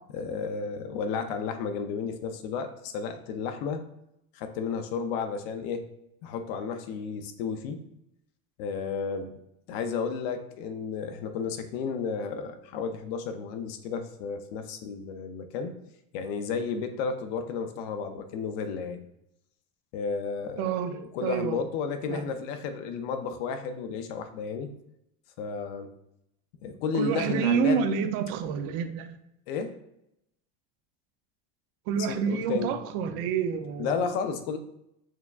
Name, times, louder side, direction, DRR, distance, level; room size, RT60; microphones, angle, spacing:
voice 1, 0.1-3.8 4.3-5.9 6.2-7.8 8.6-9.4 9.7-15.8 16.1-19.0 19.9-20.7 21.0-24.7 25.4-25.9 26.6-27.8 29.5-29.8 32.0-32.7 33.8-34.6, left 5 dB, 70° left, 7 dB, 0.5 m, -32 dB
voice 2, 20.6-21.6 22.1-22.2 26.9-29.1 31.9-34.1, right 7 dB, 50° right, 9 dB, 0.5 m, -28 dB
4.6 x 3.4 x 2.3 m, 0.81 s
cardioid pair, 160°, 33 cm